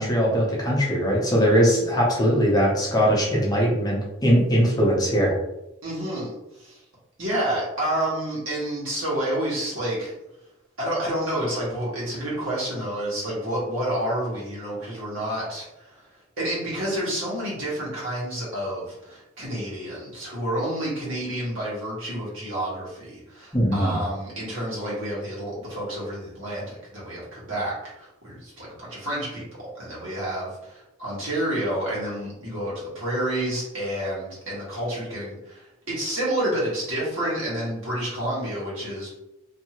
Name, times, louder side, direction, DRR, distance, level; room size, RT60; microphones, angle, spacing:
voice 1, 0.0-5.3 23.5-24.0, equal, 20° left, -4 dB, 0.7 m, -21 dB
voice 2, 5.8-6.8 7.2-10.1 10.8-16.0 16.4-39.1, right 1 dB, 70° right, -6 dB, 1.4 m, -29 dB
2.7 x 2.6 x 2.9 m, 0.91 s
head